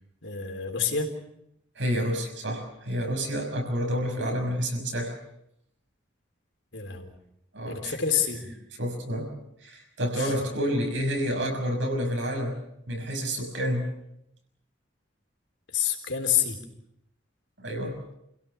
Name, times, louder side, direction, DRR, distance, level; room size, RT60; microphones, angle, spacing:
voice 1, 0.2-1.1 6.7-7.1 7.7-8.5 10.2-10.3 15.7-16.6, left 8 dB, 90° left, 3 dB, 3.8 m, -28 dB
voice 2, 1.7-5.1 7.5-7.9 8.8-9.3 9.6-13.9 17.6-18.1, equal, 85° right, 2 dB, 6.2 m, -29 dB
28.0 x 16.5 x 7.0 m, 0.78 s
head